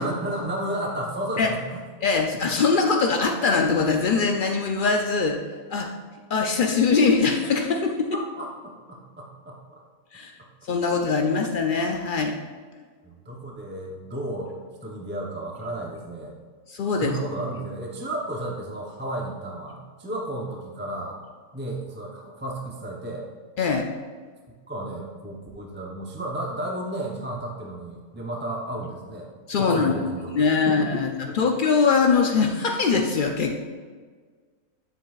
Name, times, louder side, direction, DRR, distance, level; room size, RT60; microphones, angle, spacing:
voice 1, 0.0-1.8 8.1-9.8 13.0-16.3 16.9-21.2 21.5-23.3 24.7-29.3 29.6-31.4, right 1 dB, 15° right, -1 dB, 0.4 m, -33 dB
voice 2, 2.0-5.4 5.7-5.9 6.3-8.1 10.1-10.3 10.7-12.3 16.7-17.1 23.6-23.9 29.5-30.1 30.3-31.1 31.3-33.5, left 4 dB, 90° left, 3 dB, 0.4 m, -22 dB
9.0 x 7.7 x 2.4 m, 1.5 s
omnidirectional pair, 1.6 m